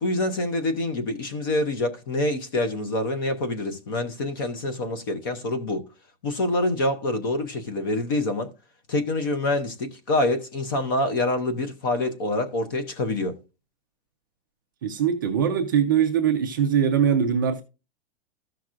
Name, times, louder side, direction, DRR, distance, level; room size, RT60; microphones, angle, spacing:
voice 1, 0.0-5.8 6.2-8.5 8.9-13.4, left 2 dB, 20° left, 0.6 m, -26 dB
voice 2, 14.8-17.6, right 8 dB, 20° right, 0.5 m, -22 dB
14.0 x 5.9 x 2.4 m
hypercardioid pair, 180°, 31 cm